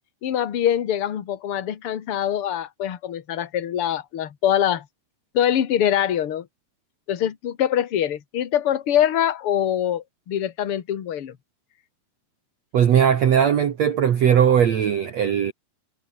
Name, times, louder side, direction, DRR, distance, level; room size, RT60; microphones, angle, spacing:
voice 1, 0.2-4.8 5.3-6.5 7.1-11.3, left 10 dB, 60° left, 1.5 m, -24 dB
voice 2, 12.7-15.5, right 8 dB, 60° right, 1.9 m, -18 dB
omnidirectional pair, 5.2 m